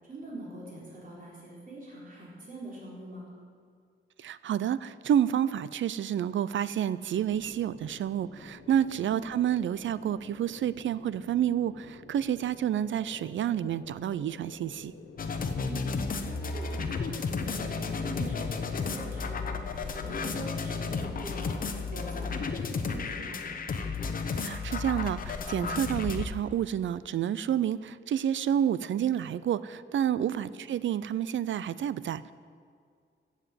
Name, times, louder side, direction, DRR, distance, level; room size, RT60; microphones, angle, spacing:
voice 1, 0.1-3.3 15.6-21.5 21.9-23.4 30.2-30.4, right 1 dB, 45° right, -5 dB, 4.1 m, -43 dB
voice 2, 4.2-14.9 24.4-32.3, right 10 dB, 75° right, 17 dB, 0.5 m, -29 dB
sound 1, 7.1-23.5, left 4 dB, 80° left, 1.5 m, -50 dB
sound 2, 15.2-26.3, left 4 dB, 45° left, 0.8 m, -33 dB
16.0 x 7.4 x 7.5 m, 2.2 s
wide cardioid pair, 175°, 20 cm